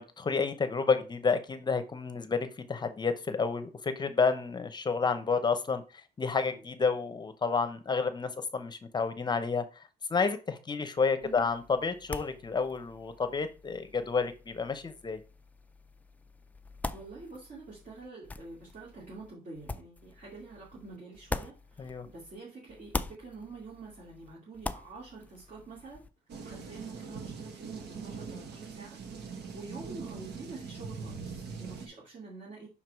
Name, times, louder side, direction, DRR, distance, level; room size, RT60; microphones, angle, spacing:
voice 1, 0.0-5.8 6.2-9.6 10.1-15.2 21.8-22.1, left 5 dB, 25° left, 10 dB, 0.8 m, -30 dB
sound 1, 11.2-22.4 22.7-26.1, left 2 dB, 10° left, 0.3 m, -43 dB
voice 2, 16.9-26.1 26.4-32.7, right 3 dB, 45° right, -6 dB, 2.4 m, -47 dB
sound 2, 26.3-31.9, right 5 dB, 70° right, 1.4 m, -42 dB
5.8 x 4.6 x 4.7 m, 0.33 s
cardioid pair, 150°, 18 cm